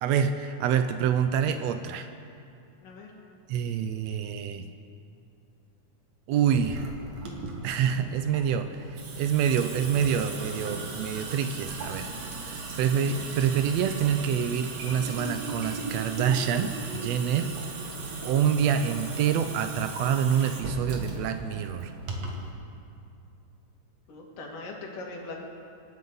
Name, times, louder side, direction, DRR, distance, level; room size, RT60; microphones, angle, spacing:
voice 1, 0.0-2.1 3.5-4.7 6.3-6.9 7.6-12.1 12.8-17.5 17.8-21.9, right 8 dB, 85° right, 9 dB, 1.5 m, -27 dB
voice 2, 2.8-3.1 24.1-25.4, left 3 dB, 85° left, -1 dB, 3.5 m, -40 dB
Water tap faucet / Sink (filling or washing) / Drip, 6.5-22.5, right 3 dB, 55° right, 2.5 m, -37 dB
26.0 x 11.0 x 4.0 m, 2.5 s
omnidirectional pair, 3.7 m